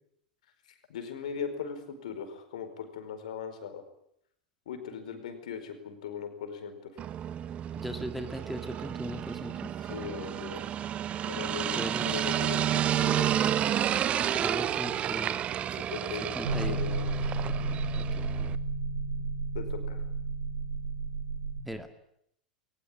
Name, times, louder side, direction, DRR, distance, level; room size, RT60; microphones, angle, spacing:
voice 1, 0.7-3.8 4.6-7.0 9.8-10.7 11.2-13.3 15.7-17.1 19.5-20.0, left 6 dB, 60° left, 8 dB, 4.9 m, -39 dB
sound 1, 7.0-18.6, right 10 dB, 30° right, 1.0 m, -31 dB
voice 2, 7.7-9.7 11.8-12.2 14.2-15.5 16.3-16.8 17.4-18.2 21.7-21.9, equal, ahead, 8 dB, 1.9 m, -39 dB
sound 2, 16.4-21.6, right 3 dB, 65° right, 2.6 m, -32 dB
22.0 x 20.0 x 9.9 m, 0.74 s
figure-of-eight pair, 90°, 4 cm